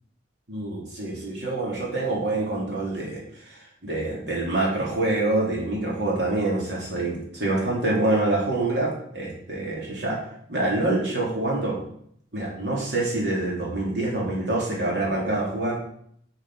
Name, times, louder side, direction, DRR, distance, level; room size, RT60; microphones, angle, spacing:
voice 1, 0.5-10.2 10.5-11.8 12.3-15.8, right 2 dB, 70° right, -4 dB, 3.3 m, -26 dB
6.5 x 6.4 x 6.3 m, 0.67 s
head